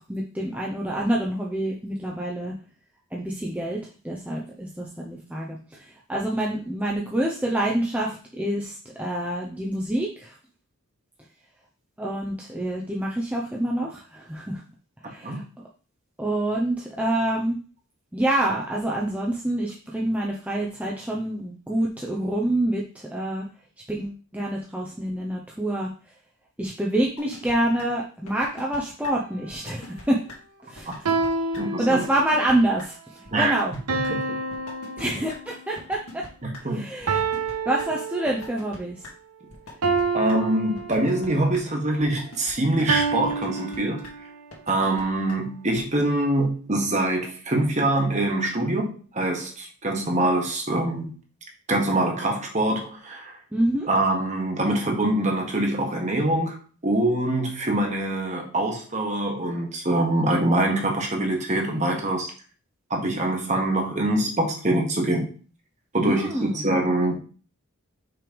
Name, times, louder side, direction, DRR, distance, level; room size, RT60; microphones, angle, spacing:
voice 1, 0.0-2.5 3.1-3.8 4.0-10.4 12.0-14.6 15.0-15.4 16.2-17.6 18.1-23.5 23.9-25.9 26.6-30.2 30.6-31.1 31.8-33.7 35.0-36.2 36.7-37.2 37.7-39.1 53.5-53.9 66.0-66.7, right 1 dB, 5° right, -3 dB, 0.6 m, -27 dB
sound 1, 27.2-27.5 27.8-27.9 28.3-28.8 29.0-29.1 29.5-30.0 30.3-30.4 30.7-31.3 31.5-31.6 32.0-32.5 32.8-32.9 33.2-33.8 34.0-34.1 34.5-35.0 35.3-35.4 35.8-36.6 37.0-37.8 38.3-38.8 39.0-39.1 39.5-40.0 40.3-40.4 40.7-41.3 41.5-41.6 42.0-42.5 42.8-42.9 43.2-43.8 44.0-44.1 44.5-45.0 45.3-45.4 45.7-45.8, left 3 dB, 85° left, 2.1 m, -42 dB
sound 2, 29.1-29.5 31.1-32.5 33.9-35.7 37.1-38.7 39.8-41.4 42.9-44.5, right 4 dB, 85° right, 0.9 m, -28 dB
voice 2, 31.6-32.0 33.3-33.5 34.1-34.4 36.4-36.8 40.1-44.1 44.7-51.1 51.7-53.4 53.9-56.6 56.8-62.3 62.9-65.3 65.9-67.2, right 1 dB, 30° right, 2 dB, 1.4 m, -24 dB
5.9 x 3.3 x 5.2 m, 0.37 s
head